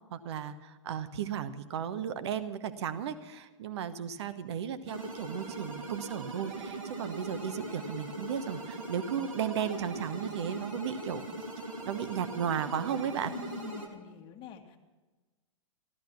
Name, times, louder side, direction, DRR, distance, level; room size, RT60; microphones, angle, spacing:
voice 1, 0.1-11.3 11.8-13.3, right 8 dB, 55° right, 11 dB, 1.1 m, -35 dB
sound 1, 4.9-13.9, right 2 dB, 85° right, 3.0 m, -40 dB
voice 2, 13.3-14.8, left 7 dB, 30° left, 4 dB, 1.7 m, -45 dB
14.5 x 13.0 x 5.8 m, 1.3 s
figure-of-eight pair, 110°, 17 cm